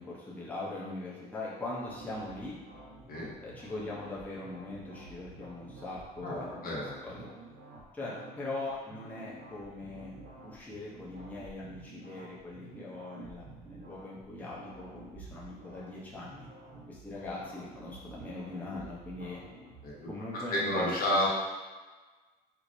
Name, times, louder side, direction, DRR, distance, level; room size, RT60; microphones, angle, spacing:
voice 1, 0.0-2.6 3.4-6.5 6.7-7.3 7.9-10.1 10.4-16.5 16.9-19.4 20.1-21.3, left 2 dB, 10° left, -7 dB, 0.7 m, -41 dB
sound 1, 1.8-20.1, right 2 dB, 80° right, 0.9 m, -50 dB
voice 2, 6.2-7.0 19.8-21.3, left 1 dB, 60° left, -5 dB, 1.1 m, -31 dB
4.5 x 2.1 x 2.6 m, 1.3 s
cardioid pair, 110°, 17 cm